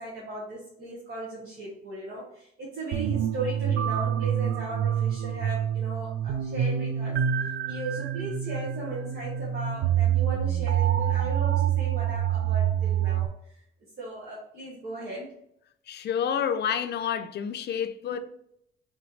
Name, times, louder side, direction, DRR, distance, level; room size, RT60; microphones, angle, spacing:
voice 1, 0.0-7.2 7.7-13.3 14.0-15.3 18.0-18.2, right 2 dB, 55° right, 1.4 m, -37 dB
sound 1, 2.9-13.3, right 10 dB, 70° right, 0.4 m, -27 dB
voice 2, 15.9-18.2, left 8 dB, 55° left, 0.5 m, -29 dB
4.1 x 3.2 x 3.2 m
cardioid pair, 90°, 20 cm